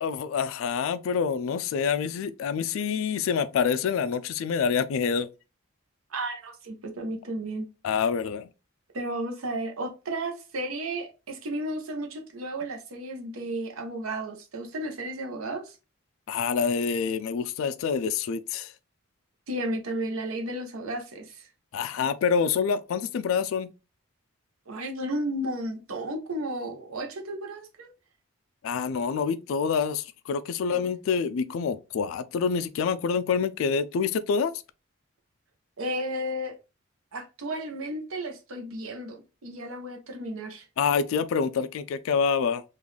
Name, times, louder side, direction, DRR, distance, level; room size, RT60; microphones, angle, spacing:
voice 1, 0.0-5.3 7.8-8.5 16.3-18.7 21.7-23.7 28.6-34.5 40.8-42.6, left 6 dB, 75° left, 0.3 m, -27 dB
voice 2, 6.1-7.7 8.9-15.7 19.5-21.5 24.7-27.9 30.7-30.8 35.8-36.5 37.1-40.6, right 1 dB, 90° right, 0.8 m, -33 dB
3.7 x 2.4 x 3.1 m
head